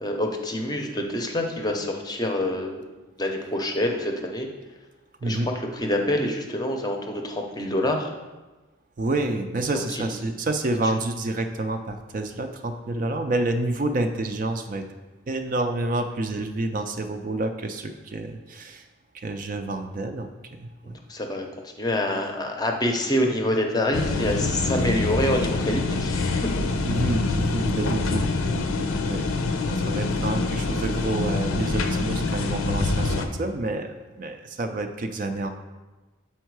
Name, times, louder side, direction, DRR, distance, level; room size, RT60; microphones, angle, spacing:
voice 1, 0.0-2.8 3.2-4.5 5.3-5.4 5.7-8.1 9.9-10.0 21.1-26.2, left 1 dB, 20° left, 3 dB, 0.6 m, -26 dB
voice 2, 9.0-14.8 15.3-18.8 19.1-20.3 20.6-20.9 26.8-29.2 29.7-35.5, right 2 dB, 40° right, 6 dB, 0.4 m, -28 dB
sound 1, 23.9-33.3, left 3 dB, 90° left, 0.6 m, -25 dB
7.2 x 4.4 x 4.6 m, 1.2 s
head